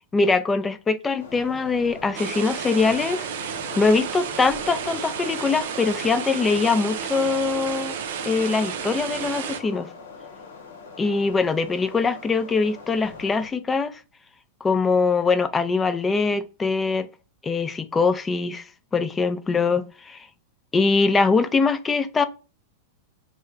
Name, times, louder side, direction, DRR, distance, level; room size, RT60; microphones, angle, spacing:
voice 1, 0.1-3.3 3.8-7.9 8.2-9.9 11.0-14.0 14.6-17.1 17.4-18.7 18.9-20.3 20.7-22.2, left 4 dB, 20° left, 0.4 m, -22 dB
sound 1, 1.2-13.5, left 4 dB, 75° left, 0.8 m, -42 dB
sound 2, 2.1-9.6, right 8 dB, 65° right, 0.4 m, -32 dB
3.1 x 2.1 x 3.6 m
hypercardioid pair, 100°, 0 cm